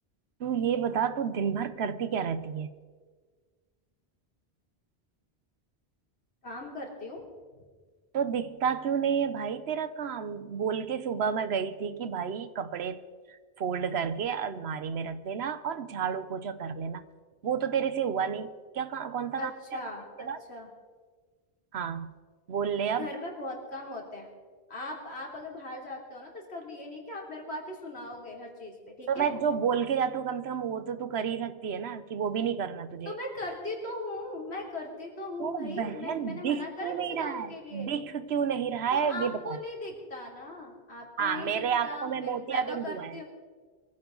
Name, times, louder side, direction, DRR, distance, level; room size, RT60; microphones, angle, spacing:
voice 1, 0.4-2.7 8.1-13.0 13.3-17.0 17.4-19.8 20.2-20.4 21.7-22.1 22.5-23.1 29.1-33.2 35.4-39.6 41.2-43.2, right 7 dB, 80° right, 1.1 m, -30 dB
voice 2, 6.4-7.2 19.4-20.7 23.0-24.3 24.7-29.3 33.1-38.0 38.9-43.2, left 2 dB, 85° left, 3.4 m, -39 dB
22.5 x 15.0 x 3.9 m
omnidirectional pair, 1.1 m